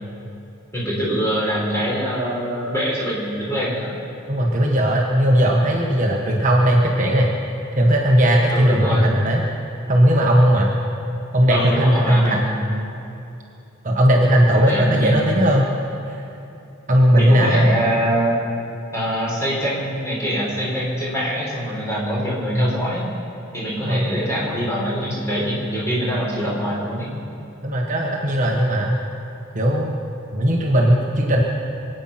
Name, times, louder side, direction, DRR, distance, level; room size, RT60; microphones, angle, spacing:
voice 1, 0.7-3.9 8.5-9.1 11.5-12.6 14.5-15.3 17.1-18.4 18.9-23.1 23.5-27.1, equal, 15° left, -6 dB, 4.4 m, -24 dB
voice 2, 4.3-7.3 7.7-9.4 9.9-10.8 11.3-12.4 13.8-15.6 16.1-16.2 16.9-17.7 22.5-22.7 23.8-24.0 27.6-28.9 29.5-29.9 30.3-31.4, equal, 35° right, -1 dB, 1.4 m, -17 dB
25.0 x 9.3 x 5.9 m, 2.7 s
head